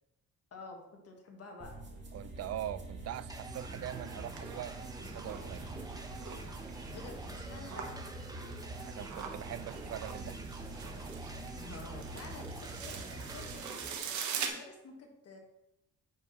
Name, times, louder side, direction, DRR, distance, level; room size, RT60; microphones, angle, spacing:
voice 1, 0.5-1.8 6.9-9.3 11.5-15.4, left 3 dB, 55° left, 2 dB, 1.6 m, -50 dB
sound 1, 1.6-13.6, right 2 dB, 40° right, 2.0 m, -46 dB
voice 2, 2.1-5.6 8.8-10.4, right 12 dB, 55° right, 16 dB, 0.4 m, -42 dB
sound 2, 3.3-14.0, right 2 dB, 10° right, 0.9 m, -48 dB
sound 3, 3.5-14.5, right 7 dB, 75° right, 1.2 m, -44 dB
10.5 x 4.6 x 3.1 m, 0.89 s
cardioid pair, 90°, 30 cm